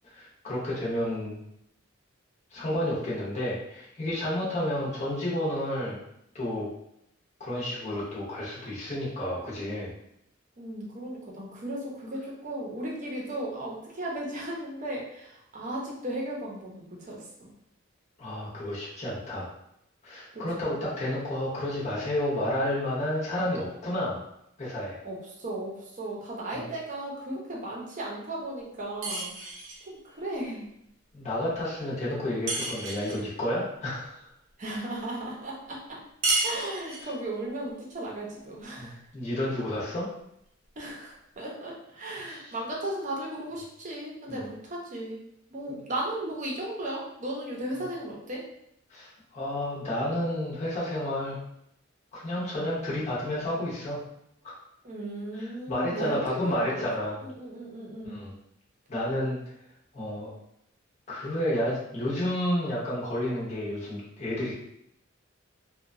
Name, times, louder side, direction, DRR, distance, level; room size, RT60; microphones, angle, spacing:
voice 1, 0.0-1.4 2.5-6.0 6.3-6.7 7.4-9.9 18.2-19.5 20.0-24.2 24.6-25.0 26.5-26.7 31.1-34.2 38.8-40.1 42.2-42.5 44.3-44.4 48.9-51.4 52.1-54.0 54.4-54.6 55.3-57.2 58.0-58.3 58.9-59.4 59.9-60.3 61.1-64.6, left 1 dB, 35° left, -7 dB, 0.7 m, -31 dB
voice 2, 10.6-17.5 20.3-20.7 25.0-29.3 29.8-30.7 34.6-36.0 36.4-39.0 40.8-45.2 45.5-48.4 54.8-58.2, right 1 dB, 40° right, -3 dB, 0.6 m, -36 dB
sound 1, 29.0-29.9 32.5-33.3 36.2-37.2, right 2 dB, 85° right, 0.6 m, -30 dB
2.8 x 2.2 x 2.6 m, 0.77 s
head